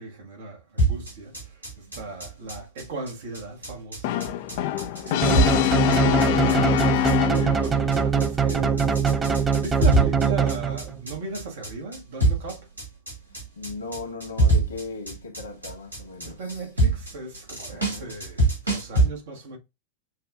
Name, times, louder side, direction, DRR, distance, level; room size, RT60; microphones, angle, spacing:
voice 1, 0.0-4.6 5.0-5.8 6.0-12.7 16.2-19.6, right 3 dB, 55° right, 1.4 m, -37 dB
sound 1, 0.8-19.1, right 2 dB, 85° right, 2.1 m, -25 dB
Brass instrument, 4.0-7.8, left 13 dB, 50° left, 0.4 m, -24 dB
voice 2, 4.7-5.2 13.5-16.4 17.7-18.2, left 3 dB, 75° left, 1.5 m, -38 dB
sound 2, 5.2-11.0, right 6 dB, 15° right, 0.5 m, -23 dB
7.2 x 2.4 x 2.5 m
figure-of-eight pair, 90°, 0 cm